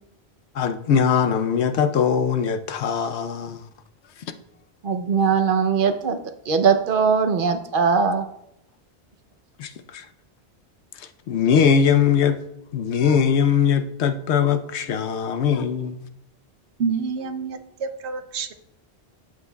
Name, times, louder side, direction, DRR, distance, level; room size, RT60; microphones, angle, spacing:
voice 1, 0.5-3.6 9.6-10.1 11.0-12.4 12.7-16.1, left 7 dB, 80° left, 0.9 m, -21 dB
voice 2, 4.8-6.2 6.5-8.3, right 6 dB, 55° right, 0.8 m, -20 dB
voice 3, 16.8-18.5, right 5 dB, 80° right, 1.0 m, -28 dB
11.5 x 7.9 x 2.3 m
omnidirectional pair, 1.1 m